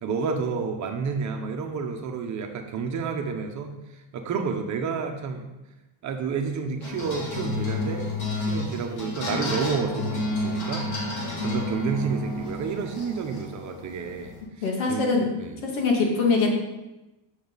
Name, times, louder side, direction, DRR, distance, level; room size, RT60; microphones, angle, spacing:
voice 1, 0.0-3.7 4.1-5.5 6.0-8.1 8.4-10.9 11.4-15.1 15.4-15.7, right 5 dB, 35° right, 4 dB, 1.0 m, -30 dB
sound 1, 6.8-14.4, left 1 dB, 50° left, 3.0 m, -31 dB
voice 2, 14.6-15.3 15.6-16.5, left 4 dB, 75° left, 0 dB, 2.5 m, -23 dB
9.2 x 6.5 x 4.0 m, 1.0 s
cardioid pair, 140°, 50 cm